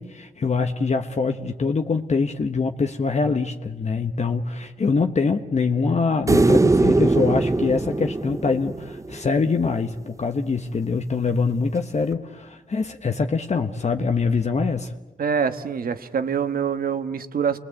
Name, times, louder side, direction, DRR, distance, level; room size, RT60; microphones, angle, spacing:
voice 1, 0.0-14.9, left 4 dB, 50° left, 5 dB, 1.2 m, -24 dB
sound 1, 6.3-9.5 12.1-12.2, right 2 dB, 20° right, 0.8 m, -20 dB
voice 2, 15.2-17.6, right 7 dB, 75° right, 10 dB, 1.4 m, -25 dB
30.0 x 21.5 x 8.4 m, 1.2 s
cardioid pair, 80°, 15 cm